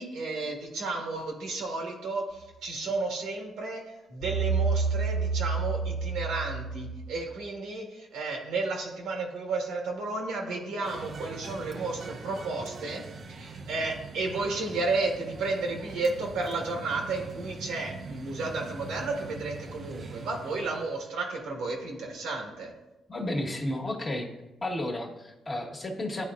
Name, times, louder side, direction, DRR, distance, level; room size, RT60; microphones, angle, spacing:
voice 1, 0.0-13.0 13.3-22.7, right 3 dB, 90° right, 1 dB, 1.5 m, -32 dB
sound 1, 4.2-7.3, right 4 dB, 80° left, 1.0 m, -29 dB
sound 2, 10.8-21.0, right 4 dB, 50° right, 0.6 m, -42 dB
voice 2, 23.1-24.3 24.6-26.2, left 1 dB, 30° left, -1 dB, 1.3 m, -32 dB
11.0 x 4.2 x 2.4 m, 1.0 s
cardioid pair, 90°, 0 cm